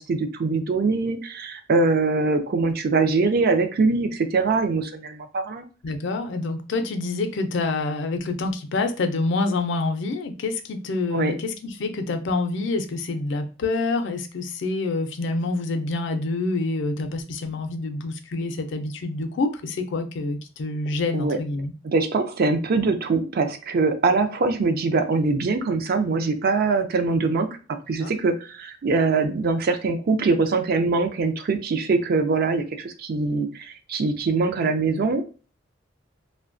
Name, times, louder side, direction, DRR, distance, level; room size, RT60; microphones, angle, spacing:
voice 1, 0.1-5.6 11.1-11.3 21.1-21.4 21.8-27.5 27.9-35.3, right 3 dB, 50° right, 8 dB, 0.4 m, -23 dB
voice 2, 5.8-21.7 28.0-28.1, left 3 dB, 65° left, 7 dB, 0.4 m, -27 dB
2.6 x 2.2 x 2.5 m, 0.35 s
head